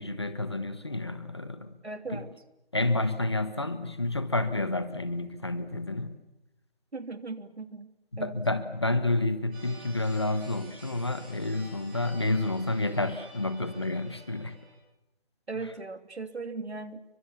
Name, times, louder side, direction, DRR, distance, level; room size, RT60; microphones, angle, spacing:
voice 1, 0.0-1.7 2.1-2.2 2.7-6.2 8.1-14.5, left 2 dB, 25° left, 12 dB, 1.2 m, -29 dB
voice 2, 1.8-2.3 6.9-7.9 8.2-8.4 15.5-17.0, right 3 dB, 85° right, 8 dB, 3.1 m, -38 dB
sound 1, 9.5-14.7, right 1 dB, 10° right, 7.5 m, -51 dB
30.0 x 24.5 x 7.3 m, 0.93 s
figure-of-eight pair, 180°, 32 cm